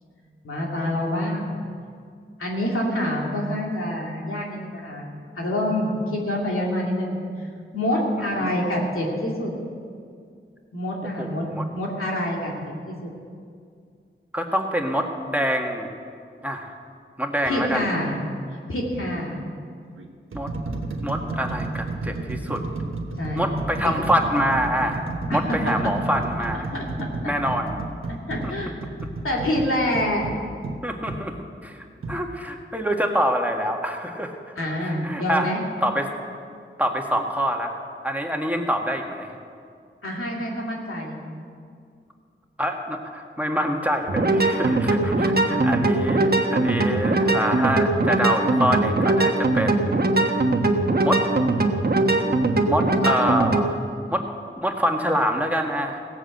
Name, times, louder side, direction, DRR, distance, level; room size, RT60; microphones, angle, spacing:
voice 1, 0.4-1.6 2.4-5.1 5.4-7.5 7.7-9.5 10.7-11.4 11.7-12.5 12.9-13.1 17.5-18.1 18.7-19.4 23.2-23.5 23.8-23.9 25.3-25.4 26.7-27.3 28.3-28.7 29.2-30.3 34.6-35.6 40.0-41.2 45.5-45.6, left 1 dB, 90° left, -2 dB, 2.5 m, -26 dB
voice 2, 11.2-11.6 14.3-15.9 16.4-16.7 17.2-17.9 20.3-20.5 21.0-22.6 23.3-25.0 25.3-26.7 27.2-27.8 28.4-28.5 30.8-31.4 31.6-34.4 34.8-35.5 35.8-36.1 36.8-37.7 38.0-39.3 42.6-50.1 51.0-51.2 52.7-53.8 54.1-54.3 54.6-56.0, equal, 5° right, 2 dB, 1.6 m, -25 dB
sound 1, 18.0-18.3 19.2-19.3 20.0-31.3 32.0-32.2, right 2 dB, 85° right, 1.2 m, -32 dB
sound 2, 44.1-53.7, right 2 dB, 50° right, 1.2 m, -21 dB
16.5 x 7.9 x 7.8 m, 2.2 s
cardioid pair, 50°, 21 cm